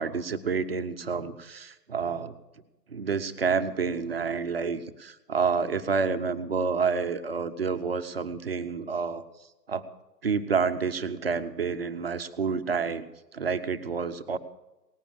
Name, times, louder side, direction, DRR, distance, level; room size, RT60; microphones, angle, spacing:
voice 1, 0.0-2.3 2.9-9.2 9.7-9.8 10.2-14.4, right 5 dB, 35° right, 10 dB, 0.8 m, -29 dB
18.5 x 10.0 x 7.4 m, 1.0 s
figure-of-eight pair, 140°, 50 cm